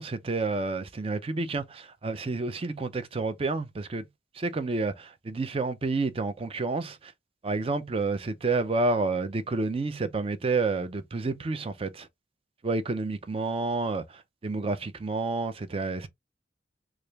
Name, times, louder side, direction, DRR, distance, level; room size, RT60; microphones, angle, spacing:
voice 1, 0.0-4.1 4.3-7.1 7.4-12.1 12.6-16.1, right 3 dB, 35° right, 0.4 m, -29 dB
3.1 x 2.4 x 3.3 m
head